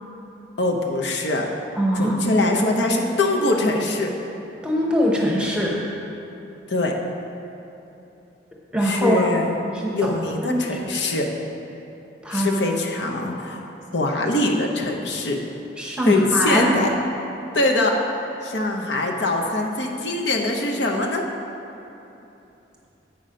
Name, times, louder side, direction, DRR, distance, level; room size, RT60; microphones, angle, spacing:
voice 1, 0.6-1.5 2.0-4.1 6.7-6.9 8.8-9.5 9.9-11.3 12.3-15.4 16.0-16.9 17.5-18.0 18.4-21.2, left 2 dB, 75° left, 1 dB, 0.8 m, -23 dB
voice 2, 1.8-2.2 4.6-5.8 8.7-9.3 9.8-10.1 10.4-10.6 12.2-12.5 15.8-16.7, equal, 5° right, -3 dB, 0.9 m, -22 dB
8.7 x 6.0 x 5.1 m, 3.0 s
head